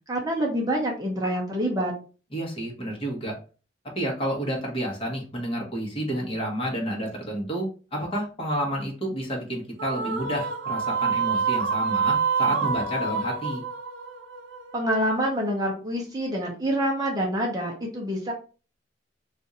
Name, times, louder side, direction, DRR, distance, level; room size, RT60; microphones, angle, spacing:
voice 1, 0.1-1.9 14.7-18.3, equal, 20° right, -1 dB, 0.7 m, -26 dB
voice 2, 2.3-3.3 3.9-13.6, equal, 30° left, -1 dB, 1.1 m, -30 dB
sound 1, 9.8-15.2, right 5 dB, 75° right, 0.5 m, -27 dB
2.6 x 2.4 x 4.1 m, 0.36 s
head